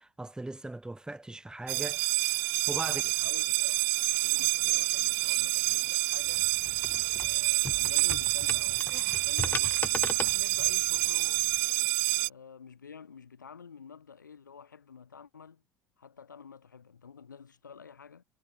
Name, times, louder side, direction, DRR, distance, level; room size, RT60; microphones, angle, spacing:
voice 1, 0.0-3.0, right 2 dB, 5° right, 1.4 m, -40 dB
sound 1, 1.7-12.3, right 40 dB or more, 55° right, 0.5 m, -28 dB
voice 2, 2.8-6.5 7.1-11.5 12.2-15.6 16.0-18.2, left 6 dB, 80° left, 4.5 m, -49 dB
sound 2, 6.2-11.6, left 4 dB, 15° left, 1.7 m, -39 dB
figure-of-eight pair, 65°, 10 cm